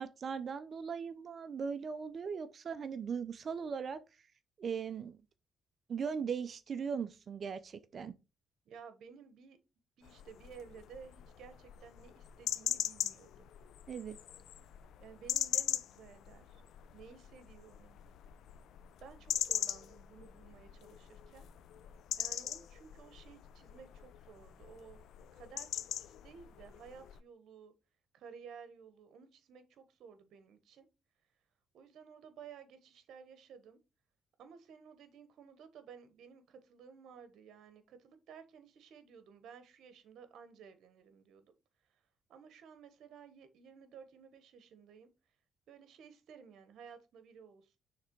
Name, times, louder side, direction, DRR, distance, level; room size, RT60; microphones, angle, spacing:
voice 1, 0.0-4.0 4.6-5.2 5.9-8.1 13.9-14.2, right 6 dB, 50° right, 0.6 m, -39 dB
voice 2, 8.7-9.6 10.0-13.5 15.0-16.6 16.9-18.0 19.0-21.4 22.2-25.0 25.3-27.7 28.1-30.9 31.7-33.8 34.4-41.5 42.3-45.1 45.7-47.8, right 6 dB, 75° right, 1.1 m, -55 dB
sound 1, 10.0-27.2, left 11 dB, 80° left, 0.5 m, -41 dB
6.5 x 3.4 x 4.5 m
cardioid pair, 90°, 0 cm